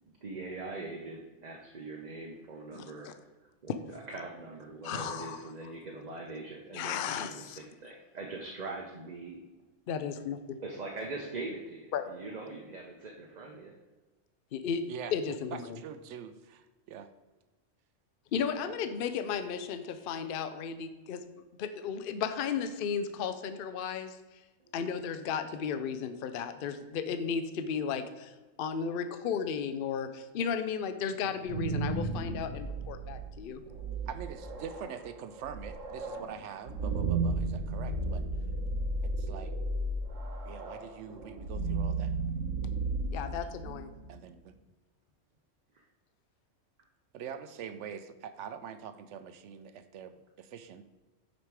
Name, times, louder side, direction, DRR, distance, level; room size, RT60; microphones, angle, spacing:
voice 1, 0.2-3.1 3.4-9.4 10.6-13.7 24.6-24.8 45.7-45.8, right 3 dB, 40° right, 0 dB, 0.8 m, -42 dB
voice 2, 2.7-3.1 3.7-3.8 4.8-5.4 6.7-7.6 9.9-10.6 11.9-12.1 14.5-14.8 15.1-15.8 18.3-21.2 21.6-24.2 24.7-33.6 43.1-43.9, left 7 dB, 55° left, 10 dB, 0.7 m, -34 dB
voice 3, 15.5-17.1 18.6-18.7 34.1-38.2 39.0-39.5 40.4-42.1 44.1-44.6 47.1-50.8, right 8 dB, 70° right, 11 dB, 0.9 m, -44 dB
sound 1, 31.2-44.1, right 3 dB, 85° right, 1.6 m, -34 dB
8.8 x 5.2 x 4.7 m, 1.2 s
omnidirectional pair, 1.3 m